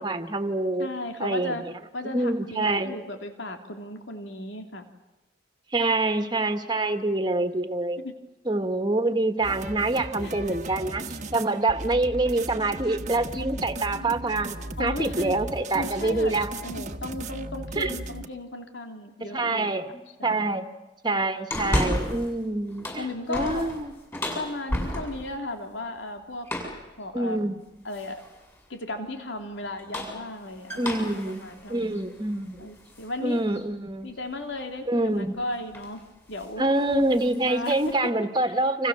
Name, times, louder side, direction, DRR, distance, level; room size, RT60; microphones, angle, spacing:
voice 1, 0.0-0.9 1.2-1.7 2.0-3.0 5.7-8.0 8.5-11.0 11.3-16.5 17.8-17.9 19.3-19.9 20.2-20.7 21.0-23.9 27.1-27.6 30.8-32.7 33.2-34.1 34.9-35.4 36.6-38.9, right 2 dB, 25° right, 8 dB, 1.9 m, -26 dB
voice 2, 0.8-1.6 1.9-4.8 8.0-8.1 10.2-10.6 12.3-12.8 13.5-14.1 14.8-15.4 15.7-16.3 16.6-19.7 20.2-20.6 23.0-23.7 24.3-26.5 27.0-27.4 27.8-28.2 28.7-32.1 32.6-33.4 34.0-36.0 36.3-36.7 37.4-38.1 38.5-38.6, left 2 dB, 75° left, 5 dB, 3.0 m, -36 dB
sound 1, 9.4-18.3, right 2 dB, 40° right, 1.5 m, -37 dB
sound 2, 21.5-22.3 22.7-25.4 26.5-26.9 27.9-28.4 29.6-33.1 33.5-33.6 35.2-35.4 35.7-36.0 36.3-36.6 36.9-37.9, equal, 15° left, 7.4 m, -32 dB
30.0 x 27.0 x 7.3 m, 1.1 s
head